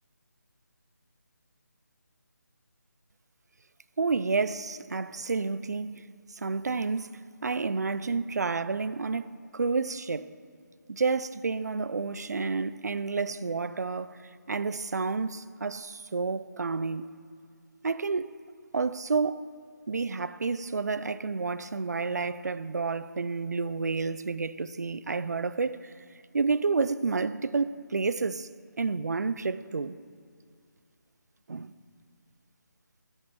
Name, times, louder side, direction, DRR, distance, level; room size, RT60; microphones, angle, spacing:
voice 1, 4.0-6.0 6.3-7.1 7.4-10.3 10.9-14.2 14.5-17.1 17.8-18.3 18.7-19.5 19.9-25.9 26.3-28.5 28.8-29.9 31.5-31.7, right 4 dB, 60° right, 0.4 m, -30 dB
10.0 x 5.4 x 7.6 m
figure-of-eight pair, 180°, 10 cm